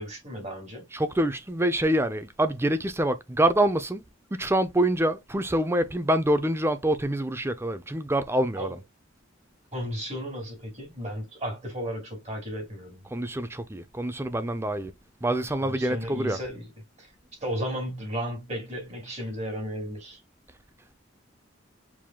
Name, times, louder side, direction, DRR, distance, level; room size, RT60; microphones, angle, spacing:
voice 1, 0.0-0.8 8.6-8.7 9.7-13.0 15.6-16.7 17.0-17.1 17.4-20.2, equal, 35° right, 2.8 m, -34 dB
voice 2, 0.9-4.0 4.3-8.8 13.1-14.9 15.2-16.4, right 1 dB, 10° right, 0.5 m, -26 dB
4.8 x 3.6 x 2.3 m
head